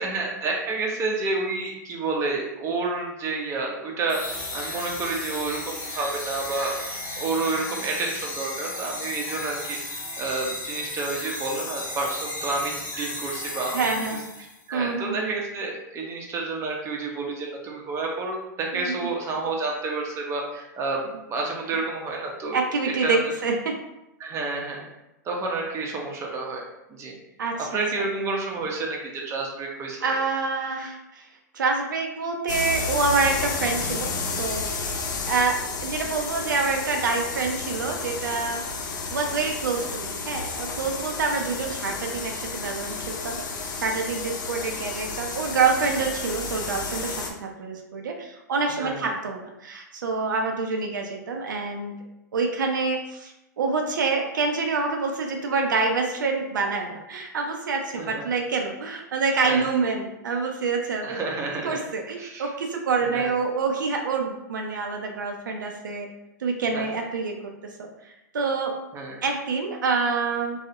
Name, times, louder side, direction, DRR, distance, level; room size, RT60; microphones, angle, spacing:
voice 1, 0.0-6.7 7.2-13.9 14.7-22.6 23.0-23.3 24.2-24.9 25.2-26.6 26.9-27.2 27.7-30.2 48.7-49.1 58.0-58.2 59.4-59.7 61.0-61.8 62.2-62.5 63.1-63.3 66.7-66.8 68.9-69.2, right 3 dB, 30° right, 0 dB, 0.6 m, -29 dB
sound 1, 4.1-14.6, left 2 dB, 35° left, 0.9 m, -34 dB
voice 2, 13.7-14.2 14.7-15.2 18.7-19.1 22.5-23.7 27.4-27.8 30.0-31.3 31.5-35.0 35.3-38.6 39.1-52.0 52.3-61.2 61.6-66.1 66.4-67.5 67.8-68.8 69.2-70.6, right 4 dB, 85° right, 2 dB, 0.4 m, -27 dB
sound 2, 32.5-47.3, left 4 dB, 75° left, 0.4 m, -31 dB
2.3 x 2.0 x 2.7 m, 0.91 s
hypercardioid pair, 110°, 10 cm